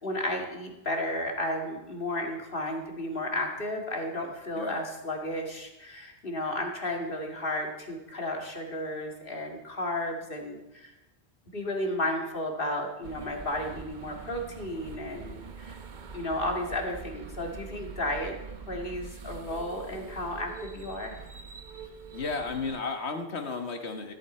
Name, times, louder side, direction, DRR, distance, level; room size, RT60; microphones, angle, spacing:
voice 1, 0.0-10.9 11.5-15.8 16.1-18.4 18.7-21.2, left 1 dB, 55° left, 2 dB, 2.3 m, -33 dB
voice 2, 4.5-4.9 22.1-24.1, left 4 dB, 85° left, 5 dB, 1.7 m, -33 dB
sound 1, 13.0-22.8, right 5 dB, 50° right, 1.0 m, -44 dB
14.0 x 14.0 x 4.4 m, 0.98 s
omnidirectional pair, 1.1 m